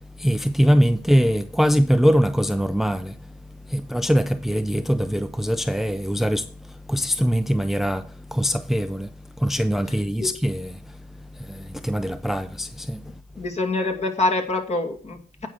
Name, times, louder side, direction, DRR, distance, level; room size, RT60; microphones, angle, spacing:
voice 1, 0.0-13.4, equal, ahead, 0.5 m, -23 dB
voice 2, 13.4-15.5, left 2 dB, 40° left, 2.3 m, -25 dB
9.1 x 4.8 x 6.1 m
supercardioid pair, 55°, 16 cm